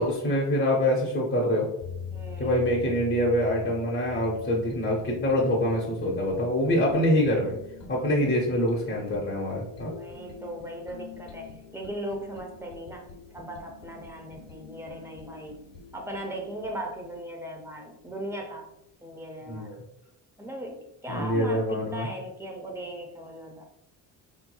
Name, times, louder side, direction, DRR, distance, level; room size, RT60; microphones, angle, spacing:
voice 1, 0.0-1.7 2.4-7.5 7.9-9.9 19.5-19.8 21.1-22.1, equal, 30° left, -4 dB, 0.8 m, -25 dB
sound 1, 1.8-17.2, left 6 dB, 75° left, 1.1 m, -44 dB
voice 2, 2.1-2.5 7.9-8.4 9.9-13.1 13.3-15.6 15.9-18.7 19.0-19.8 20.4-23.7, right 1 dB, 5° right, 1 dB, 0.6 m, -38 dB
3.6 x 3.0 x 2.2 m, 0.83 s
cardioid pair, 125°, 37 cm